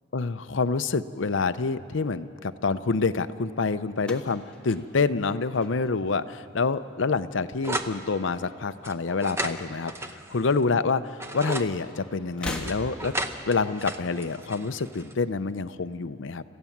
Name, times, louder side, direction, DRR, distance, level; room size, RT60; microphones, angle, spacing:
voice 1, 0.1-9.9 10.3-11.0 11.3-13.1 13.5-16.4, left 4 dB, 70° left, 12 dB, 0.6 m, -27 dB
sound 1, 4.0-6.3 6.6-7.2 8.3-9.3 9.5-9.7 10.8-10.9 12.3-13.3, left 1 dB, 5° left, 1.5 m, -39 dB
sound 2, 7.6-8.0 8.8-10.6 11.1-11.7 12.7-15.1, right 1 dB, 15° right, 0.8 m, -34 dB
27.0 x 15.5 x 7.3 m, 2.7 s
head